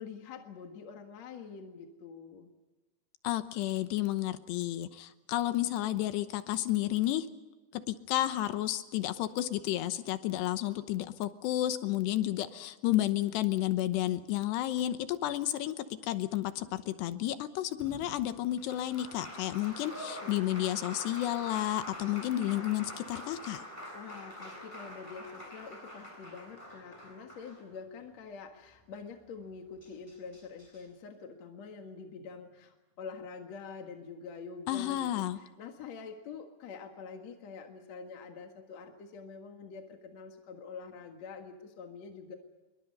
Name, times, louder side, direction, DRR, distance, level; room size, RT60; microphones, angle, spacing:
voice 1, 0.0-2.5 23.9-35.1 35.4-42.3, left 5 dB, 55° left, 4 dB, 2.1 m, -46 dB
voice 2, 3.2-7.3 7.7-23.6 34.7-35.4, left 14 dB, 75° left, 11 dB, 3.0 m, -31 dB
Applause, 17.8-28.0 29.4-29.5 29.8-30.8, equal, 5° left, 7.2 m, -46 dB
27.5 x 23.0 x 5.4 m, 1.2 s
omnidirectional pair, 5.2 m